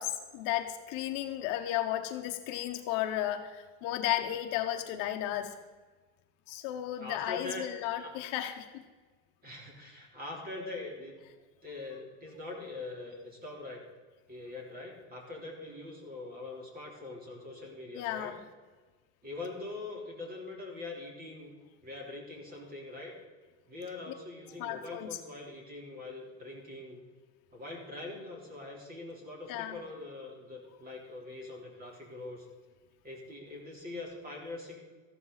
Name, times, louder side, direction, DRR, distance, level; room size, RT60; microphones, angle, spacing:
voice 1, 0.0-5.5 6.5-8.8 18.0-18.4 24.6-25.1 29.5-29.8, left 12 dB, 55° left, 6 dB, 1.1 m, -34 dB
voice 2, 7.0-7.7 8.0-8.1 9.4-11.1 11.6-13.8 14.3-18.3 19.2-21.5 21.8-23.1 23.7-27.0 27.5-32.5 33.0-34.8, left 2 dB, 25° right, -1 dB, 3.5 m, -43 dB
14.0 x 12.5 x 4.0 m, 1.4 s
cardioid pair, 160°, 39 cm